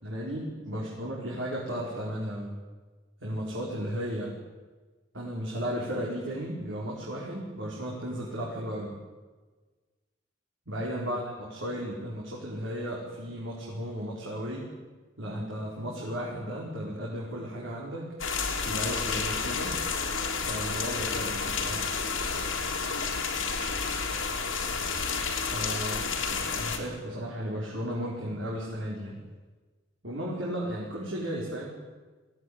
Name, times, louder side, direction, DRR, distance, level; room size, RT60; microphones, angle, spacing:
voice 1, 0.0-2.5 3.2-4.3 5.1-8.9 10.7-14.7 15.2-18.1 18.6-19.8 20.5-21.9 25.5-29.2 30.0-31.7, equal, 70° right, -4 dB, 4.9 m, -35 dB
sound 1, 18.2-26.8, left 5 dB, 75° left, 3.7 m, -30 dB
21.5 x 17.5 x 9.8 m, 1.3 s
head